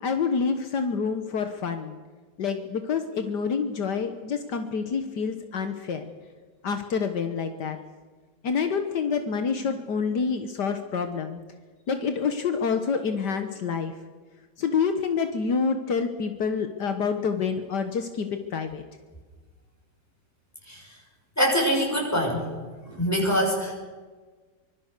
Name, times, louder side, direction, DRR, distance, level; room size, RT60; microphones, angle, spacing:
voice 1, 0.0-2.0 2.4-6.1 6.6-7.8 8.4-11.4 11.9-13.9 14.6-18.8, left 5 dB, 75° left, 7 dB, 1.8 m, -27 dB
voice 2, 21.4-22.5 22.9-23.7, equal, 10° left, 0 dB, 6.2 m, -24 dB
24.5 x 22.0 x 6.7 m, 1.4 s
omnidirectional pair, 1.9 m